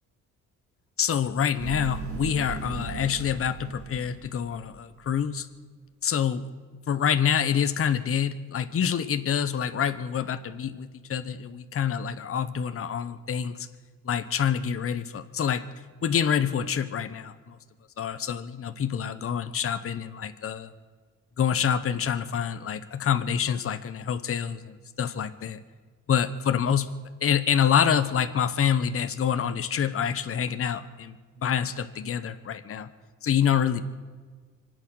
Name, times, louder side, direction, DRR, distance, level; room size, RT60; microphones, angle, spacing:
voice 1, 1.0-5.5 6.0-6.5 6.9-13.7 14.0-15.7 16.0-17.6 18.0-20.7 21.4-25.6 26.1-26.9 27.2-32.9 33.2-33.8, left 8 dB, 45° left, 10 dB, 1.0 m, -27 dB
sound 1, 1.6-5.0, right 5 dB, 45° right, 2.2 m, -37 dB
25.5 x 8.5 x 6.4 m, 1.5 s
cardioid pair, 85°, 30 cm